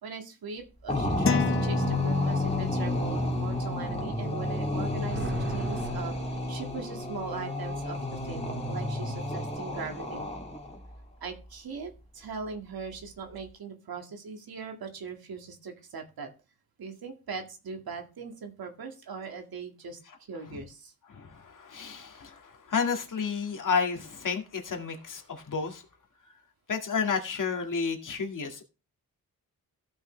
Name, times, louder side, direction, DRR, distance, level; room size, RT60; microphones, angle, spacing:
voice 1, 0.0-6.2 6.5-10.3 11.2-16.3 16.8-20.0 20.3-20.9, right 5 dB, 80° right, 4 dB, 2.1 m, -40 dB
sound 1, 0.9-10.8, left 1 dB, 20° left, 2.3 m, -30 dB
sound 2, 1.3-2.8, left 9 dB, 35° left, 0.5 m, -31 dB
sound 3, 4.7-7.3, right 2 dB, 35° right, 2.8 m, -41 dB
voice 2, 21.1-22.4 22.7-25.8 26.7-28.6, left 5 dB, 60° left, 3 dB, 2.0 m, -31 dB
15.0 x 6.2 x 3.3 m, 0.30 s
wide cardioid pair, 100°, 36 cm